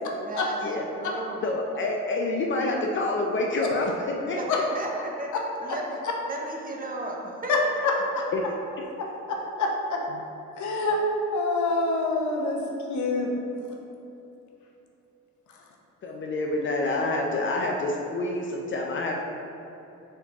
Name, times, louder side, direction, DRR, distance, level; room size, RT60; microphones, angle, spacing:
voice 1, 0.2-1.5 4.4-4.5 4.7-5.3 5.6-6.0 6.3-7.9, right 1 dB, 30° right, 0 dB, 0.6 m, -34 dB
voice 2, 1.4-4.6 8.3-8.4 16.0-19.2, left 2 dB, 40° left, 0 dB, 0.4 m, -27 dB
voice 3, 9.0-10.2 10.6-11.0 11.3-12.6 12.9-13.3, left 3 dB, 75° left, 0 dB, 0.8 m, -26 dB
4.6 x 3.7 x 2.8 m, 2.9 s
cardioid pair, 90°, 30 cm